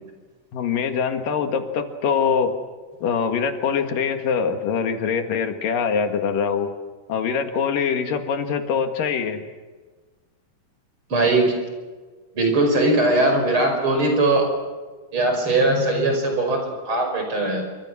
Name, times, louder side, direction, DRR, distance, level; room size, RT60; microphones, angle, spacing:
voice 1, 0.5-2.6 3.0-6.7 7.1-9.4, left 6 dB, 85° left, 6 dB, 3.5 m, -23 dB
voice 2, 11.1-11.5 12.3-14.5 15.1-17.7, right 2 dB, 40° right, 3 dB, 6.1 m, -20 dB
28.0 x 25.0 x 6.3 m, 1.4 s
omnidirectional pair, 3.8 m